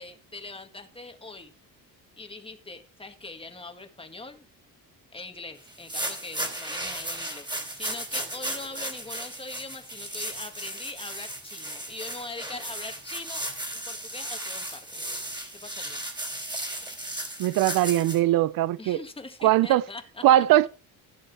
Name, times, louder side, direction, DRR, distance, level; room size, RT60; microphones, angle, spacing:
voice 1, 0.0-1.5 2.2-4.5 5.1-13.4 13.9-15.0 15.6-16.0 18.8-20.2, left 3 dB, 15° left, 1.7 m, -42 dB
sound 1, 5.7-18.2, right 1 dB, 15° right, 3.2 m, -35 dB
voice 2, 17.4-19.0 19.4-19.8 20.2-20.7, right 14 dB, 75° right, 0.5 m, -20 dB
14.5 x 6.3 x 4.7 m
cardioid pair, 100°, 35 cm